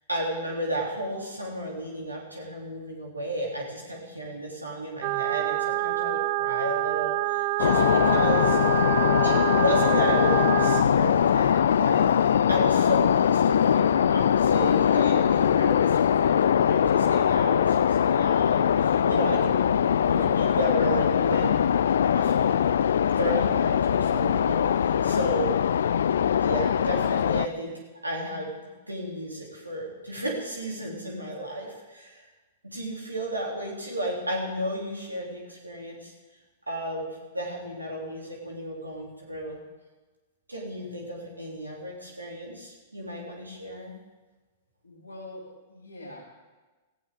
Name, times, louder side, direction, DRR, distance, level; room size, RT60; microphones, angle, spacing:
voice 1, 0.1-8.6 9.2-12.0 12.5-19.7 20.0-21.6 22.1-22.8 23.2-25.5 26.4-27.7 28.0-28.5 28.9-32.3 32.6-36.1 36.7-39.6 40.5-43.9, equal, 90° right, -2 dB, 2.9 m, -33 dB
sound 1, 5.0-10.8, right 19 dB, 45° right, 0.3 m, -27 dB
sound 2, 7.6-27.5, left 8 dB, 65° left, 0.4 m, -22 dB
voice 2, 44.8-46.2, left 1 dB, 85° left, -5 dB, 2.9 m, -43 dB
17.5 x 15.0 x 3.7 m, 1.3 s
figure-of-eight pair, 105°, 0 cm